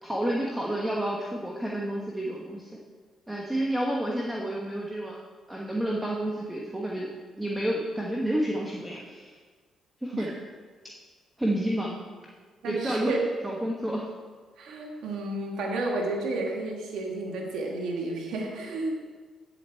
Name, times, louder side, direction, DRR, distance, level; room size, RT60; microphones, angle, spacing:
voice 1, 0.0-2.8 3.3-5.2 5.5-7.1 7.4-9.3 10.0-10.3 11.4-12.0 12.6-13.1 13.4-14.1, right 1 dB, 10° right, -3 dB, 1.2 m, -30 dB
voice 2, 12.6-13.2 14.6-19.0, right 2 dB, 80° right, 0 dB, 1.5 m, -31 dB
8.9 x 7.7 x 4.5 m, 1.5 s
cardioid pair, 90°, 0 cm